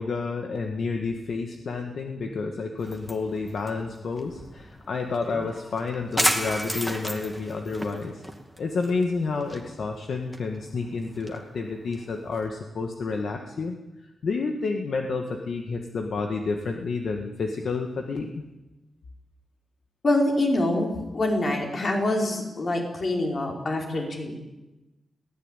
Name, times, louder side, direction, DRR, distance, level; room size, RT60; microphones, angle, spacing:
voice 1, 0.0-8.2 8.6-13.8 14.2-18.3, left 4 dB, 60° left, 4 dB, 1.9 m, -30 dB
sound 1, 2.8-12.5, equal, 5° left, 2.3 m, -34 dB
voice 2, 20.0-24.3, left 1 dB, 40° left, 1 dB, 4.9 m, -25 dB
23.0 x 17.0 x 9.2 m, 1.0 s
wide cardioid pair, 160°, 0 cm